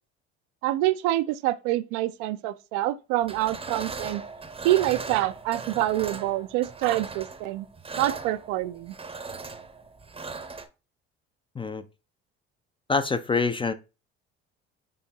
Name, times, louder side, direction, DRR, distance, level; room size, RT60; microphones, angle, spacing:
voice 1, 0.6-4.2 4.6-7.7 8.0-8.9, right 15 dB, 65° right, 0.5 m, -26 dB
sound 1, 3.2-10.7, right 4 dB, 15° right, 0.7 m, -38 dB
voice 2, 12.9-13.7, left 4 dB, 15° left, 0.4 m, -25 dB
6.2 x 2.7 x 2.8 m
hypercardioid pair, 65°, 33 cm